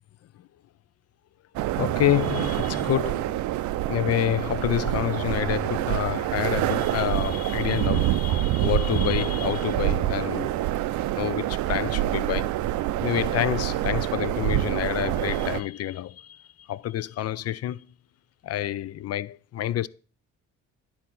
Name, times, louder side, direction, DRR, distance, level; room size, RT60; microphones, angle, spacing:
sound 1, 1.5-15.6, right 14 dB, 70° right, 0.5 m, -26 dB
voice 1, 1.8-3.4 3.9-10.5 11.1-12.5 13.0-17.9 18.4-19.9, left 12 dB, 55° left, 0.5 m, -28 dB
10.5 x 4.3 x 6.1 m
cardioid pair, 90°, 30 cm